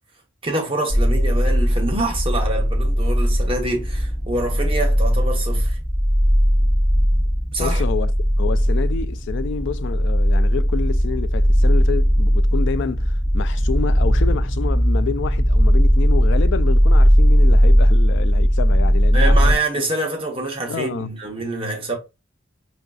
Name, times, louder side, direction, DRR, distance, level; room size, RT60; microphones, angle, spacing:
voice 1, 0.4-5.8 7.5-7.8 19.1-21.9, right 2 dB, 25° right, 0.9 m, -26 dB
sound 1, 0.9-19.5, equal, 10° left, 1.8 m, -17 dB
voice 2, 7.6-8.1 8.4-19.6 20.7-21.1, left 6 dB, 60° left, 0.3 m, -28 dB
5.7 x 2.5 x 2.3 m
head